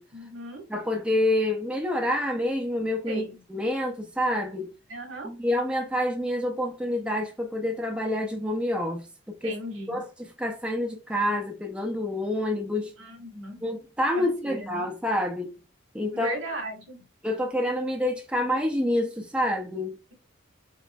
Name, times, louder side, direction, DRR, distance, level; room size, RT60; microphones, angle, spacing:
voice 1, 0.1-0.6 3.1-3.4 4.9-5.3 9.4-10.0 13.0-13.7 14.1-14.9 16.1-17.1, right 2 dB, 85° right, 1.5 m, -37 dB
voice 2, 0.7-3.2 3.5-4.7 5.2-9.5 9.9-12.9 13.6-15.5 15.9-16.4 17.2-20.0, left 1 dB, 5° right, 0.5 m, -27 dB
4.0 x 4.0 x 2.2 m
head